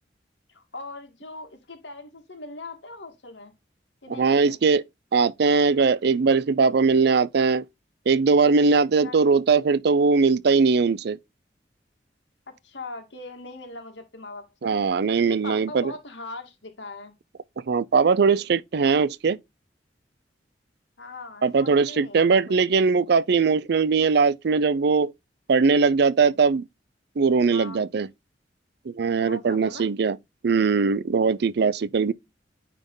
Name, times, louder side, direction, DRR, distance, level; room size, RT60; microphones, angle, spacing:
voice 1, 0.5-3.5 4.0-4.6 9.0-9.2 12.6-14.8 15.3-17.1 21.0-22.4 27.5-27.9 29.2-29.9, left 2 dB, 85° left, 2.0 m, -40 dB
voice 2, 4.2-4.8 5.1-7.6 8.1-11.2 14.6-15.9 17.7-19.4 21.4-25.1 25.5-26.6 27.2-28.1 28.9-30.2 30.4-32.1, right 4 dB, 65° right, 0.5 m, -20 dB
9.2 x 3.6 x 3.8 m
head